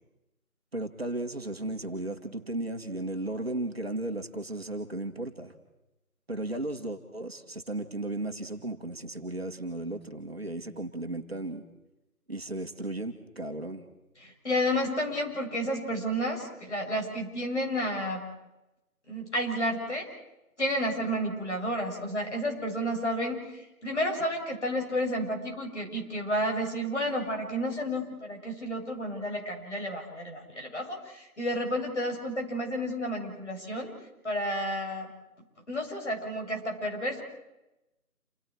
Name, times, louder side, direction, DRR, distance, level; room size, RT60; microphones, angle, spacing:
voice 1, 0.7-5.5 6.3-11.6 12.3-13.8, right 2 dB, 40° right, 4 dB, 2.1 m, -35 dB
voice 2, 14.2-18.3 19.1-20.1 20.6-33.9 34.2-35.1 35.7-37.2, equal, 50° left, 1 dB, 7.3 m, -31 dB
29.0 x 28.5 x 4.8 m, 0.95 s
figure-of-eight pair, 175°, 44 cm